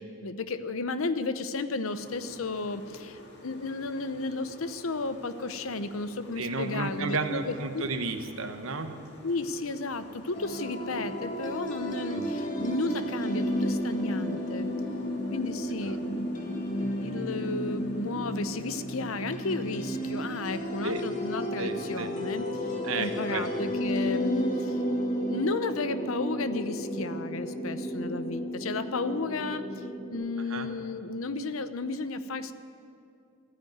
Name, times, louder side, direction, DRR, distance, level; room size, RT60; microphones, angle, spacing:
voice 1, 0.2-7.9 9.2-14.7 15.3-16.3 17.0-24.8 25.3-29.8 30.1-32.5, left 3 dB, 80° left, 12 dB, 0.8 m, -33 dB
sound 1, 1.9-21.0, equal, 55° left, 2.0 m, -50 dB
voice 2, 6.4-8.9 12.1-12.3 15.8-16.0 20.8-21.0 21.6-22.1 22.8-23.5 30.5-30.7, right 3 dB, 80° right, 7 dB, 1.1 m, -32 dB
sound 2, 10.3-30.1, equal, 35° left, 2.0 m, -32 dB
15.0 x 9.4 x 9.5 m, 2.4 s
head